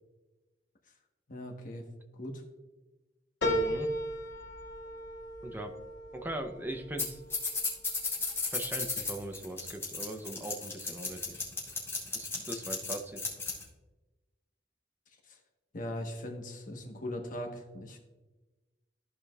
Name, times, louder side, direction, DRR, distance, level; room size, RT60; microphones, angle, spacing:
voice 1, 1.3-1.8 2.1-2.4 15.3-15.4 15.7-18.0, left 1 dB, 45° left, 2 dB, 1.2 m, -39 dB
sound 1, 3.4-8.2 8.7-9.4 9.7-9.8, equal, 85° left, 2.1 m, -36 dB
voice 2, 3.4-3.9 5.4-5.7 6.1-7.2 8.5-11.4 12.1-13.2, right 1 dB, 10° right, 5 dB, 0.7 m, -40 dB
sound 2, 7.0-7.1 7.3-13.6, left 4 dB, 15° left, 2.1 m, -34 dB
14.5 x 5.0 x 2.4 m, 1.1 s
head